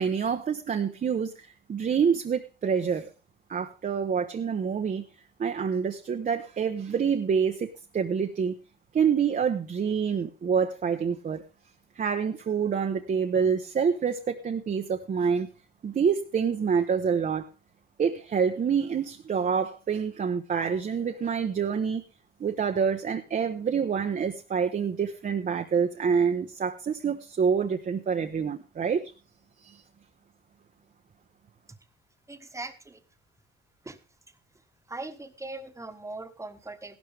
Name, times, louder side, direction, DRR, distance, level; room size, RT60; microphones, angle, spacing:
voice 1, 0.0-3.1 3.5-5.0 5.4-8.5 8.9-11.4 12.0-15.5 15.8-17.5 18.0-22.0 22.4-29.1 29.6-29.8, right 6 dB, 45° right, 4 dB, 1.1 m, -27 dB
voice 2, 32.3-33.0 33.8-34.0 34.9-37.0, right 2 dB, 15° right, 8 dB, 1.5 m, -40 dB
15.5 x 12.5 x 3.5 m, 0.31 s
cardioid pair, 90°, 20 cm